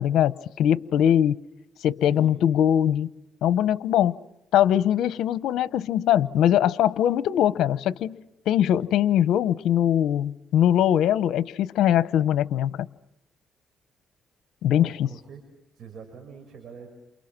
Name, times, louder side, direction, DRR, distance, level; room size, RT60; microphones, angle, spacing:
voice 1, 0.0-1.4 1.8-3.1 3.4-4.2 4.5-8.2 8.5-12.9 14.6-15.1, left 10 dB, 80° left, 0.9 m, -21 dB
voice 2, 2.0-2.4 14.7-15.5 15.7-16.9, right 6 dB, 65° right, 6.1 m, -44 dB
29.0 x 28.5 x 6.1 m
cardioid pair, 90°, 0 cm